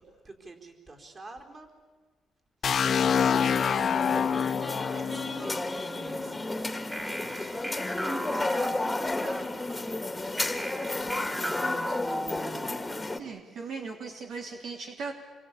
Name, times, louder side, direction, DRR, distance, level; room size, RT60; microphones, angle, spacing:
voice 1, 0.0-1.7 2.6-7.6 8.1-13.8, right 2 dB, 35° right, 2 dB, 4.5 m, -48 dB
sound 1, 2.6-6.5, left 7 dB, 55° left, 0.8 m, -27 dB
sound 2, 2.8-13.2, left 2 dB, 15° left, 1.9 m, -33 dB
sound 3, 6.9-9.4 10.4-12.9, equal, 10° right, 2.8 m, -36 dB
voice 2, 13.2-15.1, right 4 dB, 70° right, 2 dB, 2.9 m, -38 dB
27.0 x 23.0 x 8.5 m, 1.4 s
cardioid pair, 90°, 0 cm